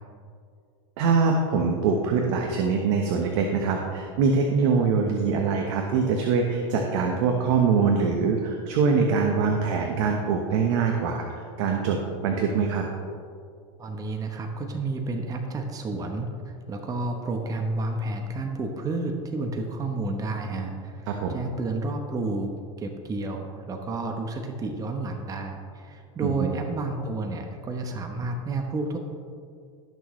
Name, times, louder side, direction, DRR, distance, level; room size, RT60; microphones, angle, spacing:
voice 1, 1.0-12.8 21.1-21.3 26.2-26.5, right 5 dB, 65° right, 2 dB, 1.2 m, -23 dB
voice 2, 13.8-22.5 22.8-29.0, right 2 dB, 20° right, 4 dB, 1.0 m, -31 dB
17.5 x 6.4 x 3.2 m, 2.2 s
supercardioid pair, 125°, 17 cm